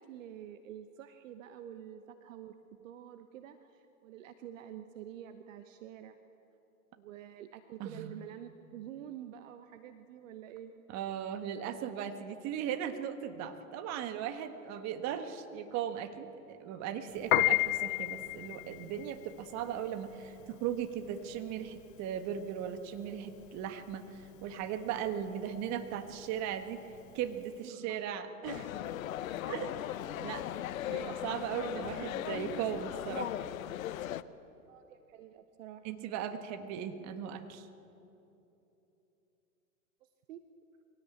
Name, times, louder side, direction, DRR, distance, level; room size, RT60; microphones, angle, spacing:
voice 1, 0.0-2.5 2.8-6.2 6.9-10.7 27.6-28.1 34.7-35.8 40.0-40.4, right 10 dB, 60° right, 9 dB, 1.1 m, -48 dB
voice 2, 7.8-8.1 10.9-26.8 27.1-28.7 29.5-30.5 30.9-33.4 35.8-37.7, right 9 dB, 35° right, 8 dB, 1.7 m, -38 dB
Piano, 17.2-27.6, left 19 dB, 40° left, 0.4 m, -34 dB
sound 1, 28.4-34.2, left 12 dB, 65° left, 0.9 m, -38 dB
22.5 x 17.0 x 8.5 m, 3.0 s
hypercardioid pair, 110°, 44 cm